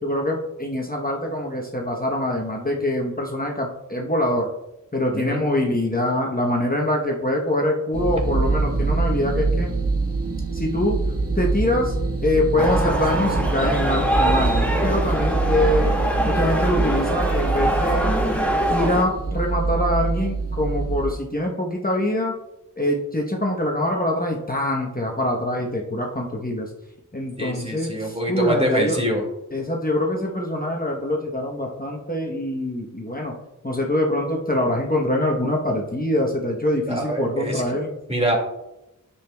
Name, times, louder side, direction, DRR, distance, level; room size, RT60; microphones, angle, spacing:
voice 1, 0.0-4.5 4.9-9.7 10.5-11.0 11.4-11.9 12.2-15.9 16.3-18.2 18.7-22.3 22.8-26.7 27.1-29.0 29.5-33.4 33.6-37.9, left 1 dB, 30° left, -1 dB, 1.0 m, -24 dB
voice 2, 5.1-5.4 27.4-29.2 36.9-37.6 38.1-38.4, equal, 20° right, 0 dB, 2.1 m, -24 dB
sound 1, 7.9-21.1, right 3 dB, 50° right, 1.0 m, -24 dB
sound 2, 12.6-19.0, right 1 dB, 5° left, 1.4 m, -24 dB
9.9 x 7.1 x 2.3 m, 0.91 s
wide cardioid pair, 45°, 31 cm